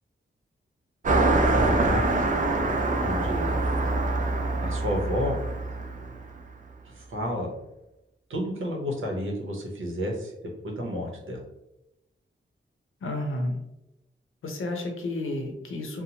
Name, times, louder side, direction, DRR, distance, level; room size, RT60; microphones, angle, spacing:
Car passing by, 1.0-6.9, right 2 dB, 40° right, 0.4 m, -25 dB
voice 1, 1.6-2.1 3.0-3.6 4.6-5.4 6.9-7.5 8.3-10.3 10.6-11.4, equal, 75° right, 0 dB, 0.7 m, -31 dB
voice 2, 13.0-13.6 14.4-16.0, left 1 dB, 75° left, 2 dB, 0.7 m, -31 dB
2.8 x 2.0 x 2.8 m, 0.91 s
wide cardioid pair, 95°, 21 cm